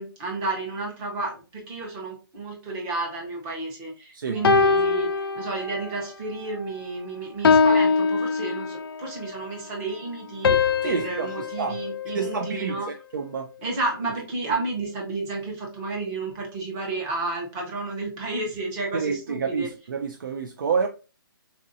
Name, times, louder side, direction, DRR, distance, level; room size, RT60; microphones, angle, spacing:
voice 1, 0.0-12.9 13.6-19.7, right 3 dB, 15° right, 0.7 m, -31 dB
sound 1, 4.4-6.0 6.5-6.8 7.4-9.1 10.4-12.8, left 4 dB, 75° left, 0.4 m, -23 dB
voice 2, 10.8-11.8 12.1-12.8 13.1-13.5 18.9-20.9, right 5 dB, 60° right, 0.4 m, -28 dB
4.1 x 2.5 x 2.6 m
hypercardioid pair, 170°, 12 cm